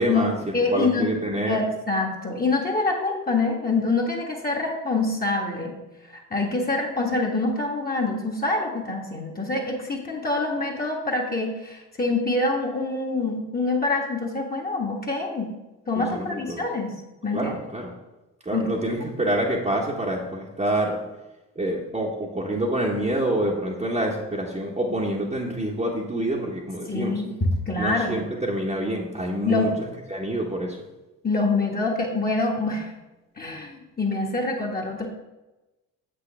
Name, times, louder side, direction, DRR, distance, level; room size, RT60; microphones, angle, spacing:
voice 1, 0.0-1.6 16.0-16.6 17.3-17.9 18.4-21.0 21.5-27.2 27.8-30.8, right 1 dB, 15° right, -3 dB, 1.2 m, -27 dB
voice 2, 0.5-1.1 1.5-5.7 6.1-15.5 15.9-16.9 17.2-17.5 18.5-18.7 26.9-28.2 29.4-29.7 31.2-32.9 33.4-35.1, left 3 dB, 20° left, -1 dB, 1.5 m, -25 dB
7.5 x 6.3 x 3.4 m, 1.0 s
hypercardioid pair, 55°, 43 cm